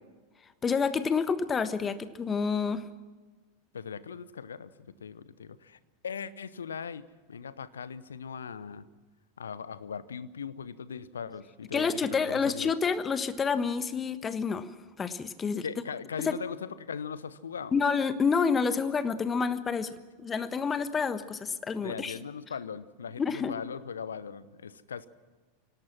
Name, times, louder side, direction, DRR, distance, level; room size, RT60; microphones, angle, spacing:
voice 1, 0.6-2.8 11.7-14.7 15.0-15.6 16.2-16.4 17.7-19.9 20.2-22.1 23.2-23.5, left 5 dB, 20° left, 13 dB, 1.3 m, -28 dB
voice 2, 3.7-4.7 5.0-8.8 9.4-12.7 15.6-17.8 21.8-25.1, left 6 dB, 70° left, 17 dB, 0.9 m, -39 dB
26.0 x 18.0 x 6.1 m, 1.3 s
figure-of-eight pair, 85°, 0 cm